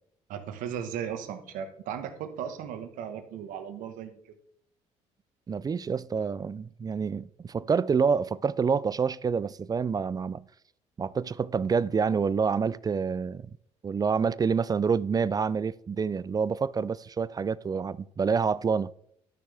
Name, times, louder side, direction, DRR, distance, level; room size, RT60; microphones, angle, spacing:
voice 1, 0.3-4.2, right 8 dB, 75° right, 1.3 m, -36 dB
voice 2, 5.5-10.5 11.0-13.5 13.8-18.9, right 5 dB, 30° right, 0.4 m, -27 dB
12.0 x 6.3 x 3.4 m
supercardioid pair, 65°, 14 cm